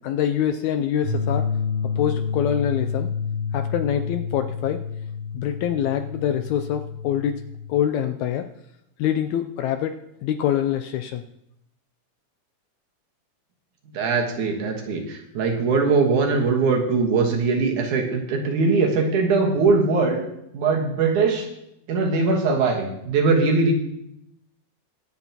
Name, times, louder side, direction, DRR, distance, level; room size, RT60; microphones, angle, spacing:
voice 1, 0.0-1.4 2.0-3.1 3.5-4.8 5.3-7.3 7.7-8.5 9.0-11.2, left 10 dB, 80° left, 8 dB, 1.7 m, -25 dB
sound 1, 1.0-7.7, left 6 dB, 50° left, 4.5 m, -29 dB
voice 2, 13.9-20.2 20.5-21.5 21.9-23.7, right 4 dB, 70° right, 1 dB, 2.9 m, -21 dB
23.5 x 8.1 x 2.9 m, 0.81 s
omnidirectional pair, 3.7 m